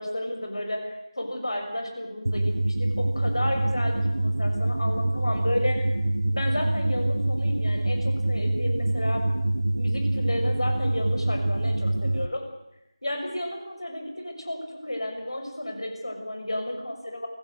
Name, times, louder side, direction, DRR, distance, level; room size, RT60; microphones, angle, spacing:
voice 1, 0.0-6.0 6.3-9.2 9.7-12.4 13.0-17.3, left 1 dB, 55° left, 4 dB, 6.1 m, -32 dB
sound 1, 2.3-12.3, right 1 dB, 65° right, 0.9 m, -25 dB
23.5 x 16.0 x 7.9 m, 0.87 s
figure-of-eight pair, 170°, 3 cm